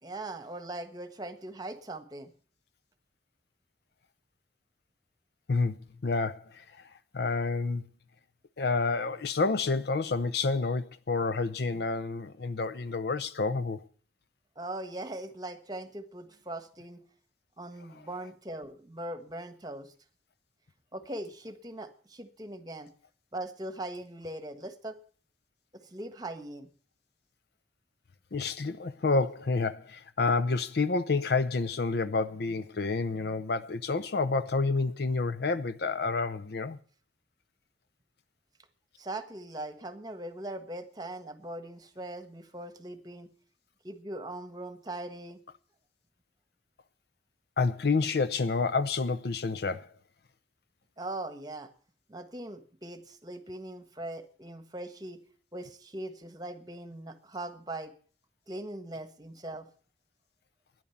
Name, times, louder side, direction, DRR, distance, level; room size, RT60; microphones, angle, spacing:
voice 1, 0.0-2.3 14.6-17.0 17.6-19.9 20.9-22.9 23.3-25.0 25.7-26.7 39.0-43.3 43.8-45.4 51.0-51.7 52.1-55.2 55.5-57.9 58.5-59.7, right 1 dB, 20° right, 1.4 m, -40 dB
voice 2, 6.0-6.6 7.1-7.8 8.6-13.8 28.3-36.8 47.6-49.9, left 3 dB, 60° left, 0.6 m, -29 dB
12.5 x 10.5 x 7.1 m
head